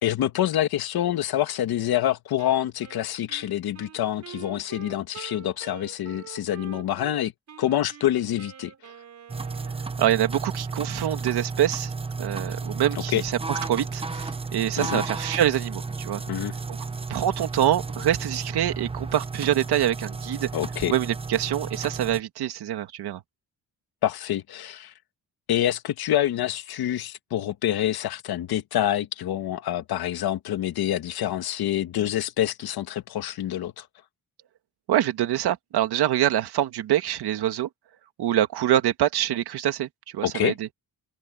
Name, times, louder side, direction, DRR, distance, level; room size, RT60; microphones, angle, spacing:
voice 1, 0.0-7.3 7.6-8.7 13.1-13.2 14.8-15.0 16.3-16.5 20.5-20.9 24.0-24.9 25.5-33.9 40.2-40.5, left 12 dB, 75° left, 1.5 m, -26 dB
Wind instrument woodwind instrument, 2.4-7.2 7.5-10.1, right 8 dB, 45° right, 5.1 m, -45 dB
sound 1, 9.3-22.2, right 4 dB, 15° right, 0.8 m, -33 dB
voice 2, 10.0-11.9 12.2-16.2 17.1-20.5 20.9-23.2 34.9-37.7 38.2-40.7, right 11 dB, 85° right, 2.3 m, -25 dB
wide cardioid pair, 180°, 38 cm